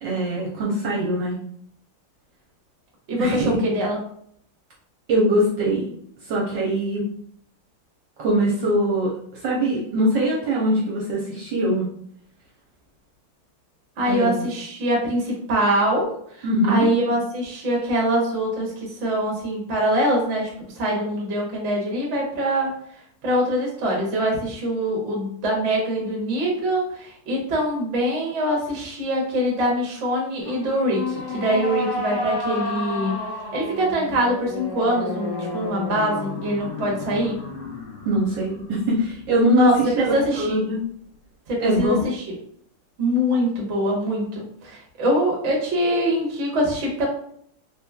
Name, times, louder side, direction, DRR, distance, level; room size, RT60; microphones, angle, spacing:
voice 1, 0.0-1.3 3.2-3.6 5.1-5.9 6.3-7.1 8.2-11.8 14.1-14.5 16.4-16.9 38.0-40.8 41.6-41.9, right 1 dB, 65° right, -4 dB, 1.3 m, -22 dB
voice 2, 3.1-4.0 14.0-20.5 20.8-22.8 23.2-33.2 33.5-37.4 39.5-40.6 41.5-42.2 43.0-47.1, equal, 45° right, -2 dB, 1.0 m, -23 dB
sound 1, 30.4-39.8, left 3 dB, 90° left, 1.6 m, -32 dB
3.6 x 3.0 x 2.2 m, 0.66 s
omnidirectional pair, 2.4 m